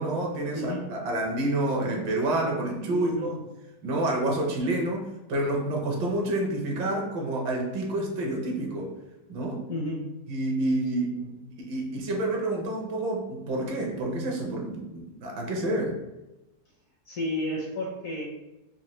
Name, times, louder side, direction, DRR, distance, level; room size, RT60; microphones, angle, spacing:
voice 1, 0.0-3.4 3.8-8.9 9.3-9.6 10.3-11.2 11.6-16.0, right 1 dB, 75° right, 0 dB, 1.4 m, -28 dB
voice 2, 0.5-0.9 2.9-3.4 5.9-6.0 9.7-10.0 11.1-11.6 17.1-18.2, left 1 dB, 60° left, -2 dB, 0.9 m, -33 dB
4.3 x 2.6 x 2.9 m, 0.99 s
omnidirectional pair, 2.0 m